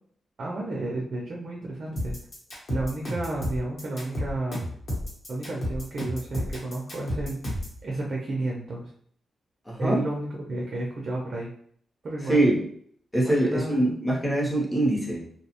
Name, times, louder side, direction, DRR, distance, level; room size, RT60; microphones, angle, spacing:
voice 1, 0.4-2.2 2.7-4.7 5.3-7.4 7.8-8.9 9.8-11.5 12.0-12.5 13.2-13.8, right 2 dB, 40° right, -2 dB, 0.4 m, -32 dB
sound 1, 2.0-7.8, equal, 40° left, 0.9 m, -32 dB
voice 2, 9.7-10.0 12.2-12.7 13.1-15.3, right 1 dB, 10° left, -4 dB, 0.6 m, -23 dB
2.7 x 2.0 x 2.8 m, 0.62 s
wide cardioid pair, 165°, 0 cm